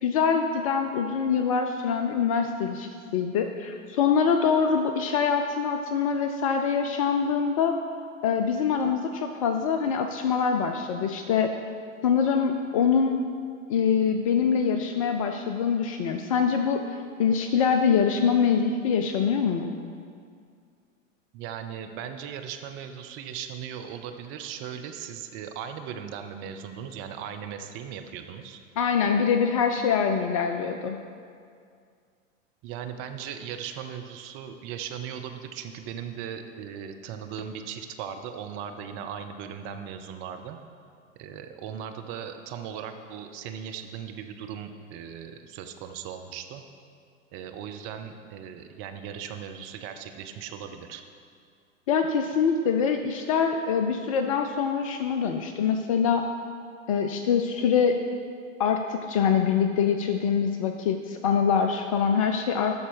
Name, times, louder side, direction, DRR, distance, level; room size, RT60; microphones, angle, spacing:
voice 1, 0.0-7.8 8.2-11.5 12.0-13.2 13.7-19.7 28.8-31.0 51.9-56.3 56.9-58.0 58.6-62.7, left 6 dB, 30° left, 6 dB, 0.3 m, -24 dB
voice 2, 21.3-28.6 32.6-40.6 41.2-46.6 47.3-51.0, right 8 dB, 30° right, 6 dB, 0.6 m, -38 dB
12.5 x 4.2 x 6.2 m, 2.2 s
figure-of-eight pair, 95°, 39 cm